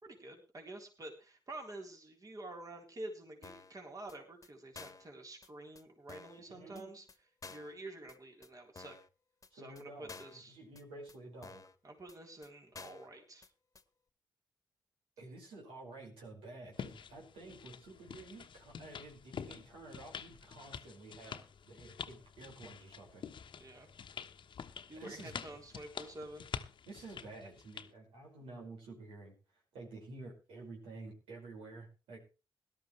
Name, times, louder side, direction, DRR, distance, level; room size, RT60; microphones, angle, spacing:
voice 1, 0.0-7.1 7.5-9.0 9.5-10.6 11.8-13.5 23.6-23.9 24.9-26.5, right 2 dB, 40° right, 2 dB, 3.8 m, -48 dB
sound 1, 3.4-3.8 4.1-4.2 4.4-4.5 4.8-5.1 5.4-5.5 5.8-5.9 6.1-6.4 6.8-6.9 7.1-7.2 7.4-7.7 8.1-8.2 8.4-8.5 8.8-9.1 9.4-9.5 9.8-9.9 10.1-10.4 10.8-10.9 11.1-11.2 11.4-11.8 12.1-12.2 12.4-12.5 12.7-13.1 13.4-13.5 13.8-13.9, left 4 dB, 40° left, 1.4 m, -51 dB
voice 2, 6.4-6.9 9.5-11.6 15.2-23.2 24.9-25.4 26.9-29.4 29.7-32.2, right 2 dB, 90° right, -1 dB, 5.2 m, -51 dB
sound 2, 16.7-27.9, left 7 dB, 65° left, 1.1 m, -47 dB
17.5 x 12.0 x 3.2 m, 0.32 s
supercardioid pair, 50°, 9 cm